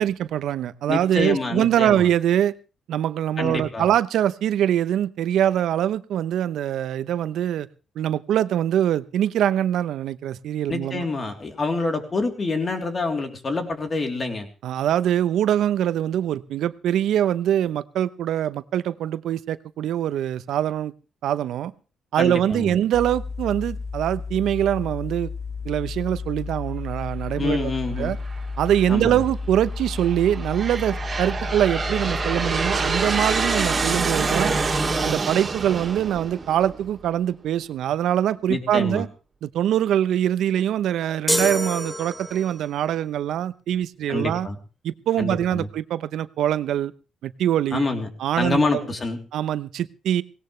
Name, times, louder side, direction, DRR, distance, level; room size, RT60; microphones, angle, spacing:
voice 1, 0.0-2.5 2.9-7.7 8.0-11.1 14.6-20.9 21.2-21.7 22.1-25.3 25.6-27.7 28.0-28.2 28.6-34.5 35.0-39.1 39.4-44.5 44.8-46.9 47.2-47.8 48.2-48.8 49.3-50.2, right 11 dB, 75° right, 14 dB, 0.8 m, -23 dB
voice 2, 0.9-2.1 3.4-3.9 10.7-14.5 22.2-22.7 27.4-28.1 28.9-29.2 38.5-39.0 44.1-44.6 45.2-45.7 47.7-48.1 48.4-49.2, left 3 dB, 35° left, 4 dB, 3.3 m, -26 dB
sound 1, 22.9-35.1, left 4 dB, 65° left, 2.1 m, -32 dB
Aircraft, 28.3-28.8 29.5-37.1, right 4 dB, 30° right, 2.8 m, -27 dB
sound 2, 41.3-42.6, equal, 5° left, 2.7 m, -26 dB
18.0 x 17.5 x 3.3 m, 0.34 s
cardioid pair, 90°, 0 cm